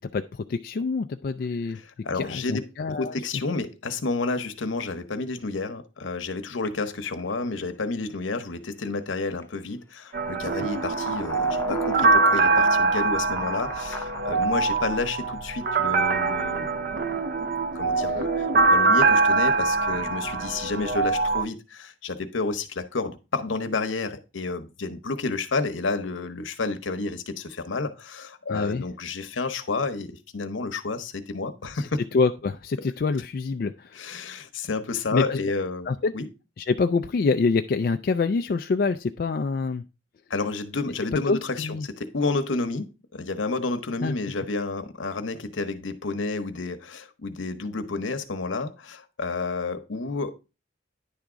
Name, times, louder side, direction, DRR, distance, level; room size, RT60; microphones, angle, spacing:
voice 1, 0.0-1.8 2.1-3.2 18.0-18.2 28.5-28.8 32.1-34.1 35.1-35.4 35.9-36.1 36.6-39.8 41.3-41.9 44.0-44.1, left 4 dB, 50° left, 0.3 m, -26 dB
voice 2, 1.7-2.7 2.9-17.2 17.7-32.0 33.9-36.3 40.3-50.3, left 3 dB, 80° left, 0.9 m, -30 dB
sound 1, 6.6-6.7 7.2-7.3 9.4-9.5 10.1-15.1, left 3 dB, 15° left, 0.6 m, -39 dB
sound 2, 10.1-21.4, right 3 dB, 50° right, 0.5 m, -23 dB
10.0 x 3.6 x 4.9 m
head